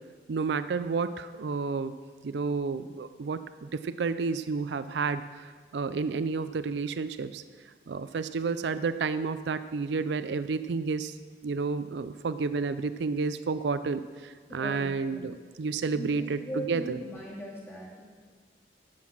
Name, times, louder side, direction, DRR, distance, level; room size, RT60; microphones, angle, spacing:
voice 1, 0.3-1.9 2.2-7.4 7.9-11.2 11.4-17.0, right 4 dB, 80° right, 12 dB, 0.4 m, -31 dB
voice 2, 14.5-15.3 15.9-18.0, equal, 15° left, -5 dB, 2.3 m, -39 dB
11.5 x 7.7 x 6.1 m, 1.5 s
head